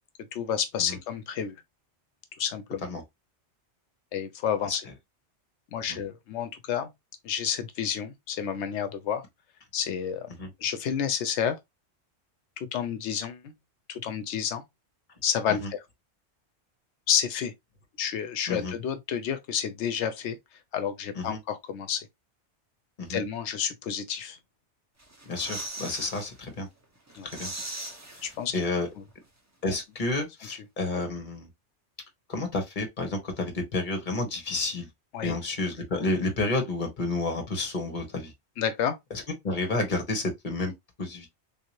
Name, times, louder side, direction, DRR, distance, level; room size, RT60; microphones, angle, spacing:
voice 1, 0.3-1.5 2.4-2.8 4.1-4.9 5.7-6.9 7.2-9.2 9.7-10.3 10.6-11.6 12.6-13.5 13.9-14.6 15.2-15.8 17.1-17.5 18.0-20.4 20.7-22.1 23.1-24.4 27.2-27.3 28.2-28.5 30.9-31.0 35.1-35.4 38.6-39.0, left 8 dB, 80° left, 0.9 m, -30 dB
sound 1, 25.0-26.3 26.7-26.8 27.1-28.8 29.1-29.2, right 2 dB, 20° right, 0.6 m, -39 dB
voice 2, 25.3-26.7 27.3-27.5 28.5-28.9 29.6-31.5 32.3-34.9 35.2-38.3 39.4-40.7 41.0-41.3, left 2 dB, 45° left, 1.2 m, -30 dB
3.5 x 2.7 x 2.9 m
omnidirectional pair, 1.2 m